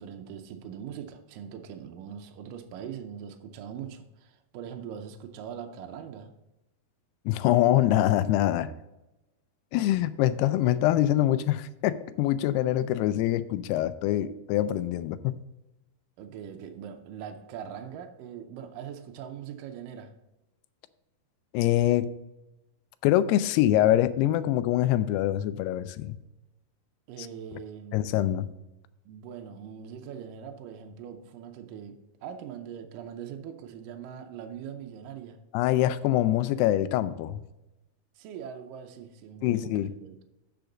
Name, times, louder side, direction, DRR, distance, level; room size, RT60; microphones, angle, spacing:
voice 1, 0.0-6.3 16.2-20.1 27.1-28.0 29.1-35.4 38.2-40.2, right 8 dB, 80° right, 2.0 m, -41 dB
voice 2, 7.3-8.7 9.7-15.4 21.5-22.1 23.0-26.2 27.9-28.5 35.5-37.4 39.4-39.9, left 13 dB, 90° left, 2.6 m, -24 dB
12.0 x 6.0 x 3.9 m
omnidirectional pair, 4.6 m